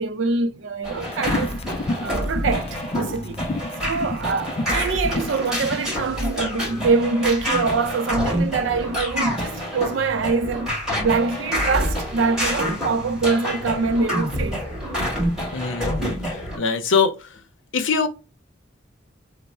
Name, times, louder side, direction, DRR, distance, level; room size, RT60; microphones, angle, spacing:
voice 1, 0.0-1.6 2.0-3.4 3.8-14.6, right 4 dB, 85° right, 0.5 m, -24 dB
sound 1, 0.8-16.6, equal, 5° right, 1.7 m, -27 dB
sound 2, 1.1-5.9, left 2 dB, 30° left, 0.3 m, -29 dB
voice 2, 15.5-17.1 17.7-18.1, left 5 dB, 85° left, 0.6 m, -23 dB
3.2 x 2.0 x 4.2 m
head